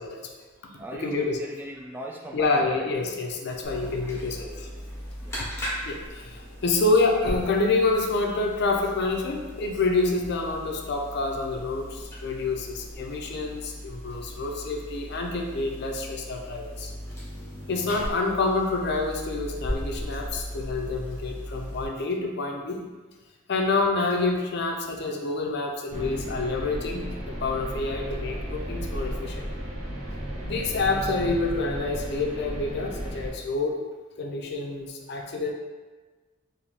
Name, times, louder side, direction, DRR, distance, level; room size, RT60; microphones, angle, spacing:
voice 1, 0.4-3.3 3.7-4.7 5.2-5.3, right 1 dB, 10° right, 0 dB, 0.3 m, -40 dB
voice 2, 0.9-1.4 2.3-4.7 5.9-16.9 17.7-22.8 23.5-29.5 30.4-33.8 34.2-35.5, left 3 dB, 60° left, 2 dB, 0.5 m, -27 dB
sound 1, 3.6-21.8, equal, 15° left, 1.2 m, -38 dB
sound 2, 25.9-33.3, equal, 40° right, 1.0 m, -34 dB
3.4 x 2.7 x 4.0 m, 1.3 s
head